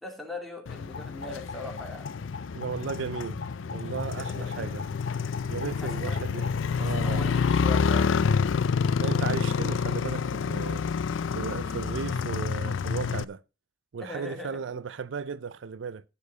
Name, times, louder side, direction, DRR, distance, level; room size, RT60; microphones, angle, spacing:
voice 1, 0.0-2.2 4.1-4.7 5.8-6.2 6.7-8.2 14.0-14.8, left 2 dB, ahead, 2.7 m, -40 dB
Motorcycle, 0.7-13.2, left 6 dB, 85° left, 0.4 m, -28 dB
sound 1, 0.9-6.6, left 4 dB, 50° left, 1.0 m, -43 dB
voice 2, 2.5-3.4 3.7-4.9 5.5-6.5 6.8-7.3 9.0-10.9 11.3-13.4 13.9-16.0, right 5 dB, 75° right, 0.4 m, -35 dB
14.5 x 7.1 x 4.1 m
head